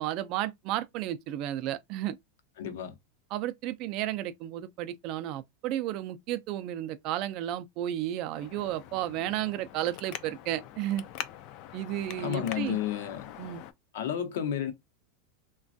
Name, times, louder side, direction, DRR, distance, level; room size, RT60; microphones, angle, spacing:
voice 1, 0.0-2.2 3.3-11.0 11.7-12.8 13.4-13.6, right 13 dB, 40° right, 0.4 m, -33 dB
voice 2, 2.6-2.9 12.2-13.3 13.9-14.7, left 10 dB, 75° left, 0.7 m, -31 dB
Traffic noise roadway noise, 8.3-13.7, left 11 dB, 45° left, 0.3 m, -44 dB
3.2 x 2.2 x 2.5 m
supercardioid pair, 160°, 0 cm